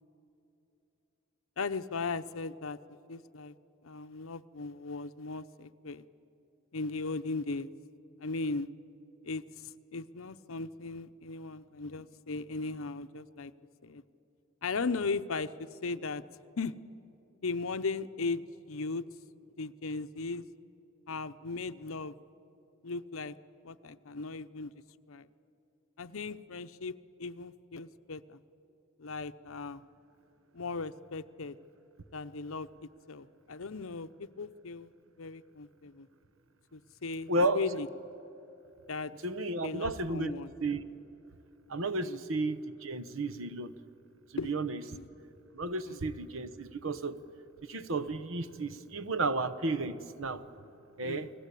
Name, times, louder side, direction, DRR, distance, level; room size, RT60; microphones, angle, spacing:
voice 1, 1.6-2.8 3.1-3.5 3.8-6.0 6.7-7.7 8.2-8.7 9.2-13.5 13.8-14.0 14.6-16.2 16.6-16.8 17.4-19.0 19.6-20.4 21.1-22.1 22.8-23.3 23.6-24.8 25.1-25.3 26.0-28.4 29.0-29.8 30.5-31.6 32.1-32.7 33.1-34.9 35.2-36.1 36.7-37.9 38.9-39.1 39.6-40.5 42.0-42.2 44.4-44.5 44.8-45.1 45.9-46.0 51.0-51.3, left 3 dB, 75° left, 12 dB, 0.8 m, -37 dB
voice 2, 37.3-37.6 39.2-40.3 40.6-40.8 41.7-43.7 44.4-44.8 45.5-47.2 47.7-50.4 51.0-51.3, right 2 dB, 70° right, 13 dB, 1.1 m, -32 dB
29.5 x 20.0 x 8.4 m, 2.9 s
head